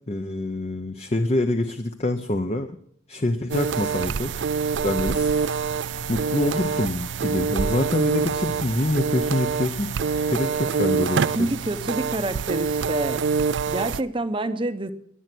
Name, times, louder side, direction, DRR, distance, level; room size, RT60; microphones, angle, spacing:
voice 1, 0.1-2.8 3.1-4.3 4.8-5.3 6.1-9.9 10.3-11.5, left 2 dB, 35° left, 7 dB, 0.7 m, -26 dB
sound 1, 3.5-14.0, right 5 dB, 75° right, 0.5 m, -25 dB
voice 2, 11.3-13.2 13.7-14.9, right 1 dB, 25° right, 11 dB, 0.8 m, -27 dB
21.5 x 8.0 x 6.1 m, 0.67 s
head